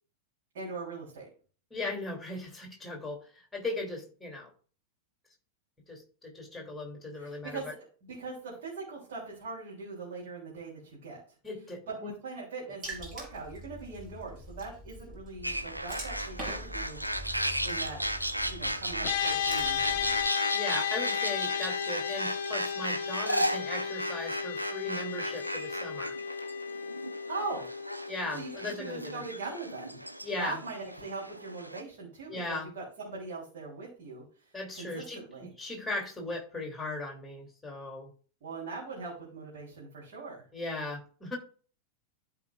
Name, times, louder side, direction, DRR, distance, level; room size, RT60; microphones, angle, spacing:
voice 1, 0.5-1.3 7.1-11.2 11.9-17.3 17.6-18.0 18.5-20.1 27.3-27.7 28.3-30.0 30.4-35.5 38.4-40.4, right 3 dB, 55° right, -6 dB, 3.3 m, -41 dB
voice 2, 1.7-3.2 3.5-4.5 5.9-7.6 11.4-12.1 20.5-26.1 28.1-29.2 30.2-30.6 32.3-32.7 34.5-35.2 35.6-38.1 40.5-41.4, left 2 dB, 5° left, 1 dB, 2.7 m, -38 dB
Water / Splash splatter, 12.8-20.3, equal, 25° right, 4.1 m, -44 dB
sound 1, 15.4-31.8, right 1 dB, 90° right, 0.7 m, -35 dB
sound 2, 19.0-30.5, left 8 dB, 50° left, 0.9 m, -35 dB
14.0 x 4.8 x 2.4 m, 0.39 s
figure-of-eight pair, 90°, 0 cm